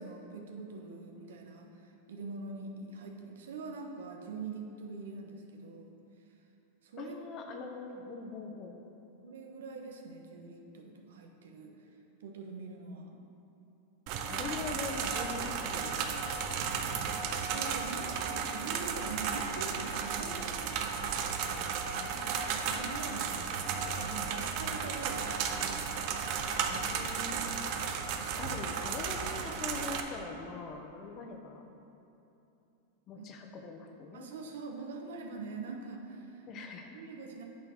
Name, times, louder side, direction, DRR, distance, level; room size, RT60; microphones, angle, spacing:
voice 1, 0.0-6.0 6.8-7.1 9.2-11.9 12.2-13.2 17.2-21.8 22.7-25.8 28.2-28.4 33.2-33.3 34.1-36.6 36.9-37.4, right 3 dB, 80° right, 2 dB, 1.0 m, -44 dB
voice 2, 7.0-8.8 14.3-16.6 21.9-23.4 26.7-27.7 28.4-31.7 33.1-34.3 36.5-37.0, left 4 dB, 40° left, 3 dB, 1.0 m, -43 dB
sound 1, 14.1-30.0, right 6 dB, 55° right, 0.7 m, -34 dB
8.8 x 4.5 x 5.8 m, 2.8 s
hypercardioid pair, 110°, 0 cm